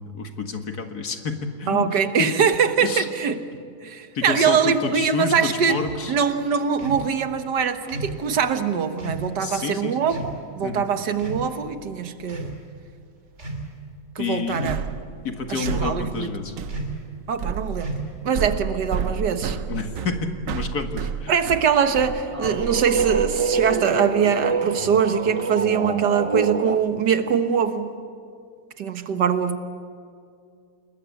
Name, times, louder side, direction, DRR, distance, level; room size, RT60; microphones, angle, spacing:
voice 1, 0.1-1.9 2.2-2.3 2.8-3.1 4.1-6.1 9.4-10.0 10.6-10.9 14.2-14.7 15.2-16.5 19.7-21.3, left 4 dB, 65° left, 6 dB, 2.2 m, -29 dB
voice 2, 1.7-3.4 3.8-5.8 6.1-12.6 14.2-14.8 15.5-16.4 17.3-18.0 18.2-19.6 21.3-27.9 28.8-29.6, right 7 dB, 80° right, 9 dB, 1.9 m, -23 dB
sound 1, 5.7-6.0 6.8-7.1 7.9-8.2 9.0-9.3 10.1-10.4 11.2-11.7 12.2-12.6 13.3-13.7 14.5-14.9 15.6-16.0 16.7-17.0 17.8-18.3, right 2 dB, 40° right, 3.3 m, -32 dB
sound 2, 14.7-23.8, right 7 dB, 60° right, 1.1 m, -31 dB
sound 3, 21.9-26.8, right 4 dB, 25° right, 0.9 m, -26 dB
28.5 x 21.0 x 8.4 m, 2.3 s
omnidirectional pair, 1.8 m